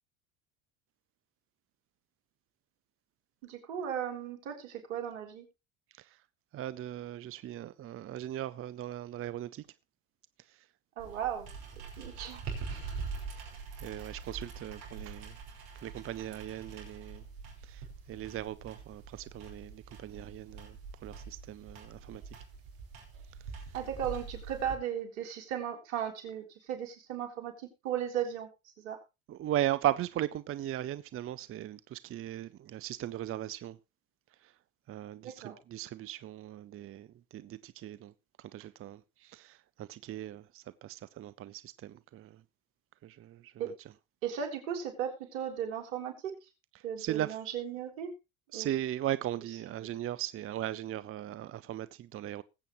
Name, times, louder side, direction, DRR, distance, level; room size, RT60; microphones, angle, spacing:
voice 1, 3.4-5.5 11.0-11.5 12.0-12.4 23.7-28.5 28.8-29.0 35.2-35.6 43.6-43.7 44.2-46.5 46.8-48.1 48.5-48.7, right 9 dB, 75° right, 3.7 m, -36 dB
voice 2, 6.5-9.7 10.4-10.7 13.3-15.4 15.8-17.2 17.6-22.4 23.4-23.7 29.3-33.8 34.4-34.5 34.9-38.1 38.4-42.4 43.0-43.7 46.7-47.4 48.5-52.4, right 12 dB, 35° right, 0.6 m, -38 dB
sound 1, 11.0-24.7, right 5 dB, 60° right, 5.5 m, -44 dB
20.5 x 8.4 x 3.1 m
hypercardioid pair, 80°, 40 cm